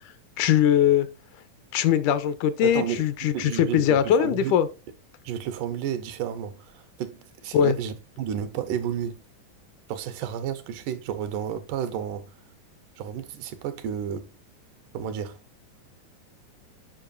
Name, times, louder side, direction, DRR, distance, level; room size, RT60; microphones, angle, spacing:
voice 1, 0.4-1.1 1.7-4.7 7.5-7.8, left 9 dB, 80° left, 2.0 m, -21 dB
voice 2, 2.6-4.5 5.2-9.2 9.9-12.3 13.0-14.3 14.9-15.4, right 9 dB, 80° right, 2.3 m, -32 dB
7.7 x 5.2 x 2.5 m
omnidirectional pair, 3.7 m